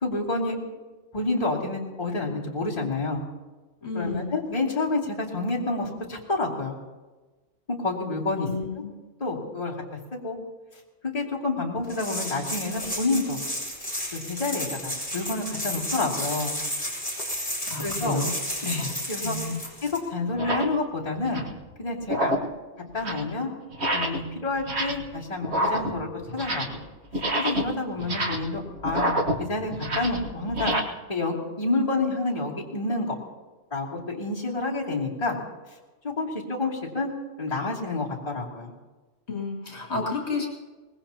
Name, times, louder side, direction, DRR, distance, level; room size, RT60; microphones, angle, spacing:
voice 1, 0.0-0.6 1.1-3.2 3.9-6.8 7.8-8.5 9.2-9.7 10.2-10.4 11.0-13.4 14.1-16.6 17.8-18.2 18.6-19.4 19.8-21.4 21.8-22.3 22.9-23.5 23.9-26.8 27.4-29.1 29.5-30.7 31.1-33.1 33.7-35.3 36.0-37.1 37.4-38.7, left 3 dB, 30° left, -6 dB, 3.0 m, -28 dB
voice 2, 3.8-4.3 8.5-8.9 17.7-18.3 19.2-19.6 39.3-40.5, left 3 dB, 55° left, -2 dB, 2.9 m, -30 dB
sound 1, 11.9-20.0, equal, 5° left, 5.1 m, -32 dB
sound 2, 18.7-18.9 19.6-19.7 20.3-20.8 21.1-21.6 22.0-22.6 22.9-23.3 23.7-24.3 24.6-25.1 25.4-26.8 27.1-30.8, right 1 dB, 55° right, 1.7 m, -28 dB
24.0 x 20.5 x 2.9 m, 1.2 s
omnidirectional pair, 1.3 m